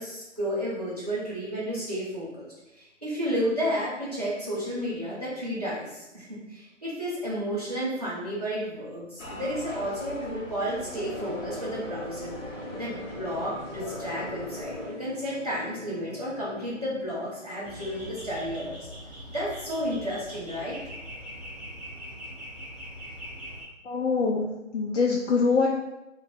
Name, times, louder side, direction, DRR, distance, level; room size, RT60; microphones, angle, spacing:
voice 1, 0.0-18.9 19.3-20.8, equal, 30° right, -8 dB, 0.8 m, -32 dB
sound 1, 9.2-14.9, left 1 dB, 90° left, 1.0 m, -40 dB
sound 2, 11.1-18.1, left 1 dB, 20° left, 1.1 m, -43 dB
sound 3, 17.6-23.6, equal, ahead, 0.5 m, -42 dB
voice 2, 23.9-24.5 24.7-25.7, left 4 dB, 70° left, -2 dB, 0.5 m, -23 dB
2.4 x 2.0 x 3.5 m, 0.96 s
figure-of-eight pair, 175°, 38 cm